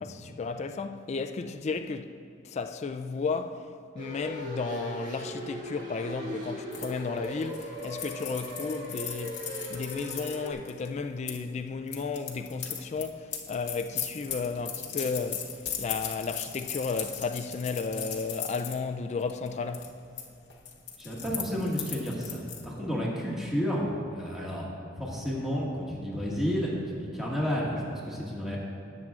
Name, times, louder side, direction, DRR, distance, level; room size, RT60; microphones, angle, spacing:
voice 1, 0.0-2.1 2.4-3.7 3.9-9.4 9.7-19.9, left 4 dB, 35° left, 0.3 m, -33 dB
sound 1, 4.0-10.5, equal, 45° right, 1.8 m, -38 dB
sound 2, 6.7-11.4 11.9-18.8 19.2-19.5 19.7-20.3 20.5-22.6, left 8 dB, 60° left, 1.0 m, -38 dB
voice 2, 21.0-24.7 25.0-28.6, equal, ahead, 1.7 m, -31 dB
18.0 x 7.4 x 2.4 m
head